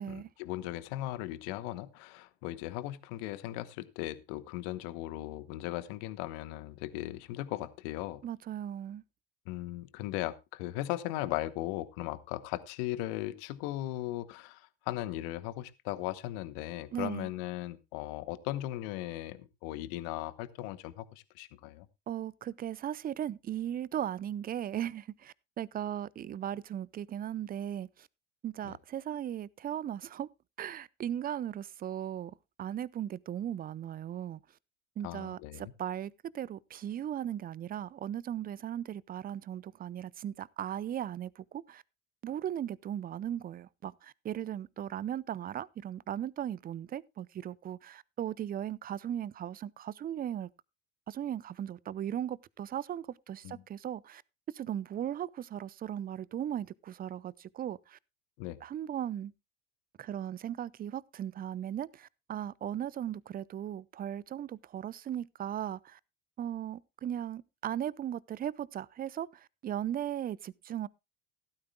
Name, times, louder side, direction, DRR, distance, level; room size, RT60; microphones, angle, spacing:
voice 1, 0.0-8.2 9.5-21.9 28.6-28.7 35.0-35.7 53.4-53.6 58.4-58.6, left 16 dB, 60° left, 1.1 m, -38 dB
voice 2, 8.2-9.0 16.9-17.3 22.1-28.1 28.4-30.3 30.6-34.4 35.0-41.8 42.2-50.5 51.1-54.2 54.5-58.0 58.6-59.3 60.0-66.0 66.4-70.9, right 10 dB, 30° right, 0.6 m, -37 dB
16.0 x 13.0 x 2.2 m
figure-of-eight pair, 65°, 32 cm